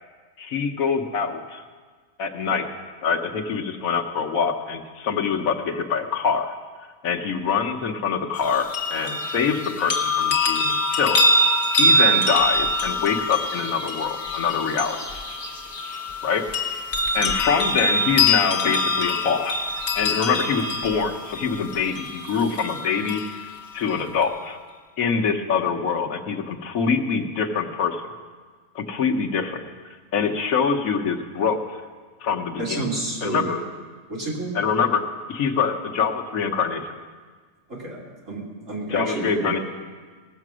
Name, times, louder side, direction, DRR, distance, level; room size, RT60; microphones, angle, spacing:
voice 1, 0.4-1.6 2.2-2.7 3.0-6.5 7.0-11.2 11.7-15.0 16.2-16.5 17.1-23.2 23.7-24.6 25.0-28.0 28.7-29.6 30.1-31.8 32.2-32.9 33.2-33.6 34.5-35.0 35.3-36.9 38.9-39.6, left 6 dB, 85° left, 4 dB, 1.4 m, -24 dB
muchty medium chimes, 8.4-23.4 23.9-24.0, left 1 dB, 50° left, 1.5 m, -24 dB
voice 2, 32.6-33.6 34.1-34.6 37.7-39.6, right 2 dB, 65° right, -4 dB, 3.1 m, -30 dB
18.5 x 7.6 x 6.1 m, 1.5 s
omnidirectional pair, 1.4 m